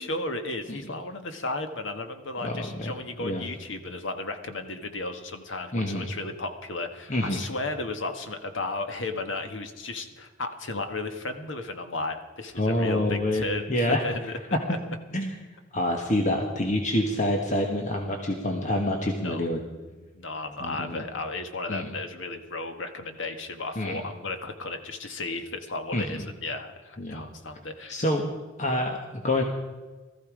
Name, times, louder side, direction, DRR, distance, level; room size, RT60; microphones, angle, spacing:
voice 1, 0.0-14.4 14.7-14.8 19.2-19.5 19.9-28.0, left 2 dB, 80° left, 7 dB, 1.4 m, -34 dB
voice 2, 2.4-2.9 3.2-3.5 5.7-6.1 7.1-7.4 12.6-14.0 14.7-14.8 15.1-15.4 15.7-19.6 20.6-21.0 21.7-21.9 23.8-24.0 25.9-26.2 27.0-27.2 27.9-28.2 28.6-29.4, left 1 dB, 40° left, 3 dB, 1.4 m, -27 dB
18.5 x 14.0 x 5.0 m, 1.3 s
head